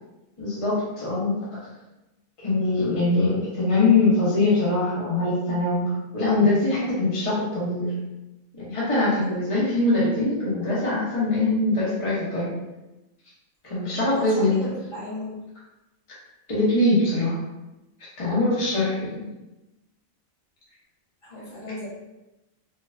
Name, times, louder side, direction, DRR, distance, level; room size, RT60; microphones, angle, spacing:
voice 1, 0.4-1.4 2.4-7.9 8.6-12.5 13.6-14.5 16.5-17.4 18.2-19.2, left 2 dB, 25° left, -8 dB, 1.0 m, -22 dB
voice 2, 14.1-15.4 21.2-21.9, left 1 dB, 45° left, -8 dB, 1.3 m, -36 dB
4.2 x 2.9 x 2.6 m, 1.0 s
omnidirectional pair, 1.4 m